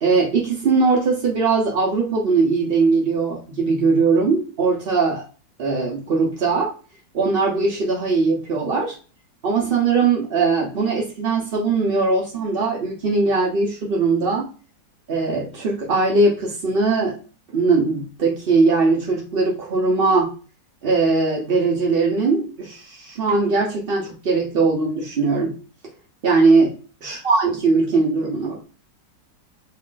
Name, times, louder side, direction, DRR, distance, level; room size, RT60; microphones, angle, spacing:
voice 1, 0.0-5.2 5.6-6.7 7.1-8.9 9.4-14.5 15.1-17.2 17.5-20.3 20.8-25.6 26.2-26.8 27.0-28.6, right 4 dB, 65° right, -2 dB, 0.5 m, -20 dB
3.1 x 2.4 x 3.7 m, 0.36 s
omnidirectional pair, 2.0 m